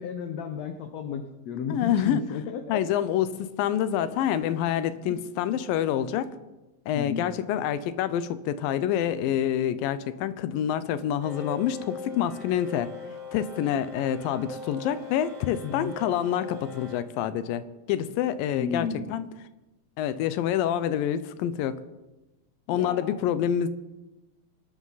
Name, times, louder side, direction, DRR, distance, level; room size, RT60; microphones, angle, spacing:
voice 1, 0.0-2.8 6.9-7.3 15.6-15.9 18.5-19.1 22.7-23.1, left 6 dB, 65° left, 6 dB, 1.8 m, -33 dB
voice 2, 1.7-2.2 2.7-6.3 6.9-12.9 13.3-19.3 20.0-21.8 22.7-23.7, left 10 dB, 90° left, 13 dB, 2.5 m, -27 dB
sound 1, 11.2-17.0, left 2 dB, 50° right, 2.5 m, -41 dB
25.0 x 12.5 x 4.1 m, 1.0 s
omnidirectional pair, 3.9 m